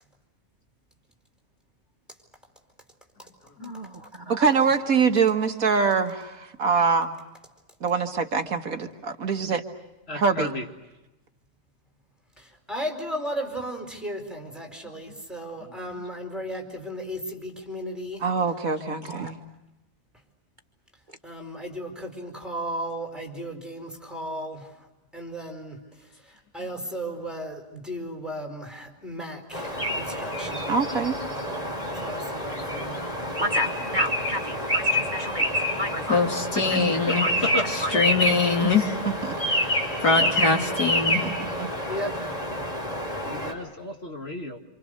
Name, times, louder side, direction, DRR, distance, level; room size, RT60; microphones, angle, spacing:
voice 1, 3.6-4.6 19.0-19.3 33.4-36.2 36.5-36.6 37.2-37.3 37.8-37.9, equal, 30° right, 4 dB, 1.5 m, -32 dB
voice 2, 4.3-7.1 7.8-9.6 10.1-10.5 18.2-19.4 30.7-31.2 38.6-38.7 39.3-39.4 41.6-41.7, right 5 dB, 60° right, 6 dB, 1.9 m, -24 dB
voice 3, 10.1-10.7 36.6-36.8 37.1-37.7 40.1-40.3 43.3-44.6, left 2 dB, 40° left, 3 dB, 2.1 m, -32 dB
voice 4, 12.4-18.2 21.2-24.7 25.1-25.8 26.2-30.8 31.9-33.0 41.9-42.3, equal, ahead, 3 dB, 4.6 m, -35 dB
sound 1, 29.5-43.5, equal, 25° left, 4.2 m, -28 dB
voice 5, 36.1-37.2 37.7-39.0 39.6-39.7 40.0-41.2, left 4 dB, 80° left, 3 dB, 3.2 m, -23 dB
28.0 x 28.0 x 6.5 m, 0.99 s
omnidirectional pair, 1.7 m